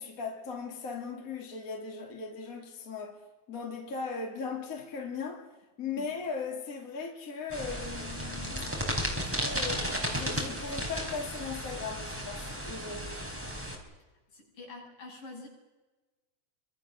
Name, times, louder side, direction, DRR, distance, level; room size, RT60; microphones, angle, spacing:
voice 1, 0.0-3.2 3.5-5.5 5.8-13.2, left 5 dB, 25° left, 3.0 m, -38 dB
sound 1, 7.5-13.7, equal, 5° right, 4.1 m, -34 dB
voice 2, 14.3-15.5, left 3 dB, 70° left, 9.6 m, -46 dB
28.0 x 24.5 x 6.6 m
omnidirectional pair, 4.1 m